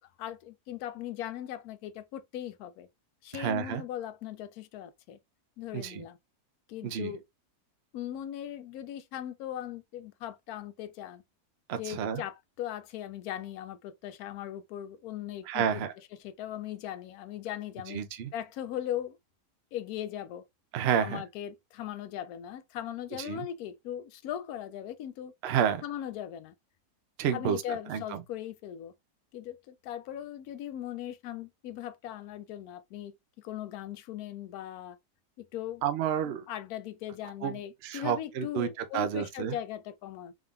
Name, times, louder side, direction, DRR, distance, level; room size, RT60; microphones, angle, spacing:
voice 1, 0.2-2.9 3.2-5.2 5.6-6.2 6.7-7.2 7.9-11.2 11.8-15.8 16.2-18.0 18.3-19.2 19.7-20.5 21.0-25.3 25.8-26.5 27.3-28.9 29.3-35.0 35.4-35.8 36.5-40.3, left 11 dB, 70° left, 1.0 m, -39 dB
voice 2, 3.3-3.8 5.7-6.0 6.8-7.1 11.7-12.2 15.5-15.9 17.9-18.3 20.7-21.2 23.2-23.4 25.4-25.8 27.2-28.2 35.8-36.5 37.4-39.6, right 8 dB, 65° right, 0.6 m, -30 dB
3.7 x 3.6 x 2.3 m
omnidirectional pair, 1.8 m